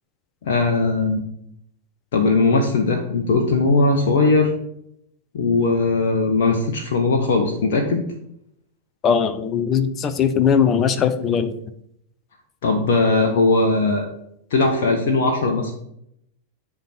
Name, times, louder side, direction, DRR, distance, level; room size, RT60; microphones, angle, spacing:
voice 1, 0.4-1.2 2.1-4.5 5.3-8.0 12.6-14.1 14.5-15.7, left 3 dB, 55° left, 2 dB, 1.1 m, -19 dB
voice 2, 9.0-11.5, left 7 dB, 30° left, 12 dB, 0.6 m, -19 dB
10.5 x 3.7 x 5.8 m, 0.74 s
figure-of-eight pair, 90°, 0 cm